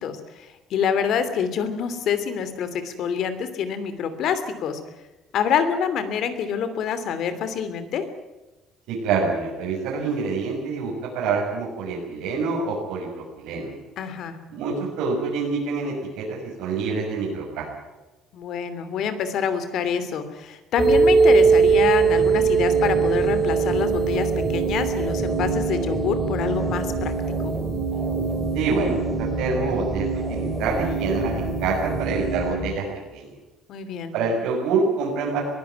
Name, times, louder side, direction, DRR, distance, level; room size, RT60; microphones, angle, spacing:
voice 1, 0.0-4.8 5.3-8.0 14.0-14.4 18.3-27.1 27.4-27.5 33.7-34.1, left 7 dB, 55° left, 11 dB, 2.8 m, -26 dB
voice 2, 8.9-13.7 14.5-17.7 28.5-32.9 33.1-33.3 34.1-35.4, right 4 dB, 85° right, -4 dB, 6.3 m, -26 dB
sound 1, 20.8-32.6, right 5 dB, 10° right, 4.8 m, -22 dB
22.0 x 15.5 x 9.4 m, 1.1 s
cardioid pair, 160°, 0 cm